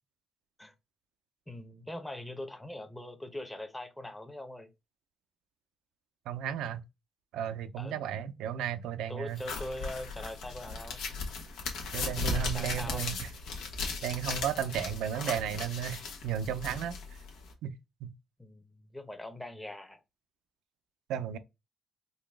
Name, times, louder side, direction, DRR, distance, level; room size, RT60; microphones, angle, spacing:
voice 1, 1.5-4.7 7.8-8.0 9.1-11.0 12.5-13.1 18.4-20.0, left 1 dB, 10° left, 0.8 m, -42 dB
voice 2, 6.3-6.8 7.3-9.4 11.9-13.2 14.0-16.9 17.6-17.7 18.0-18.1 21.1-21.4, right 9 dB, 90° right, 0.5 m, -34 dB
sound 1, 9.4-17.5, left 3 dB, 90° left, 1.1 m, -37 dB
3.9 x 2.3 x 3.4 m
cardioid pair, 90°, 0 cm